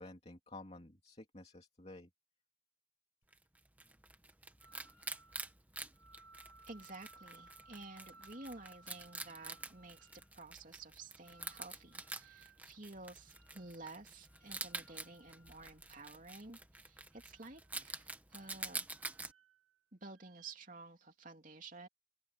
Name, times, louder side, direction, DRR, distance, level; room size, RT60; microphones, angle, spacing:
voice 1, 0.0-2.1, left 2 dB, 30° left, 2.8 m, -52 dB
Wild animals, 3.3-19.3, right 3 dB, 10° right, 1.2 m, -48 dB
sound 1, 4.6-5.5 5.9-10.3 11.2-12.6 13.3-13.9 14.2-16.4 17.0-17.9 18.8-19.8 20.1-20.5, right 3 dB, 85° right, 4.0 m, -63 dB
voice 2, 6.7-18.8 19.9-21.9, right 3 dB, 40° right, 3.1 m, -52 dB
open air
head